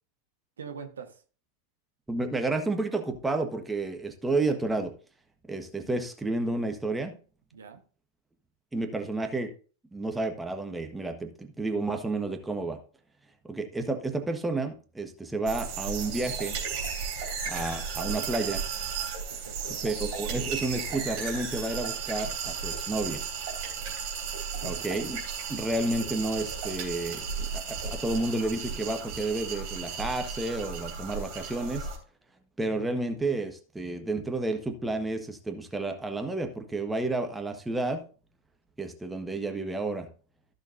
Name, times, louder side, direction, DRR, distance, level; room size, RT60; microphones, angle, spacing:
voice 1, 0.6-1.2 7.5-7.8 19.3-19.8 23.6-23.9 24.5-24.9, right 6 dB, 70° right, 1.4 m, -44 dB
voice 2, 2.1-4.9 5.5-7.1 8.7-9.5 9.9-12.8 13.4-16.6 17.5-18.6 19.8-23.2 24.6-25.2 25.5-31.9 32.6-38.0 38.8-40.1, right 2 dB, 10° right, 1.3 m, -31 dB
sound 1, 15.5-32.0, right 6 dB, 45° right, 3.3 m, -34 dB
14.5 x 6.5 x 2.7 m
figure-of-eight pair, 90°, 0 cm